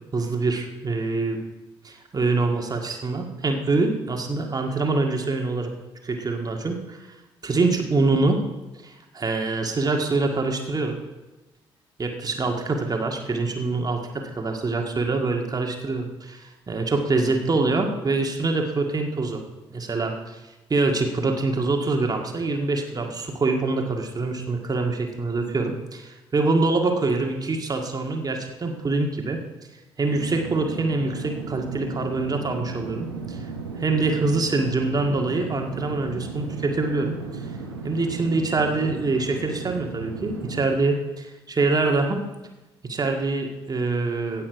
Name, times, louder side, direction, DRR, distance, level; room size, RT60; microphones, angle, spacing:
voice 1, 0.1-1.4 1.8-5.7 6.0-7.1 7.4-8.4 8.8-11.0 12.0-19.4 19.7-20.4 20.7-29.4 30.0-33.4 33.8-37.2 37.8-42.2 42.8-44.5, right 3 dB, 30° right, 3 dB, 1.9 m, -25 dB
sound 1, 30.0-40.7, right 4 dB, 85° right, 1.1 m, -35 dB
17.0 x 7.8 x 4.7 m, 1.1 s
figure-of-eight pair, 45°, 13 cm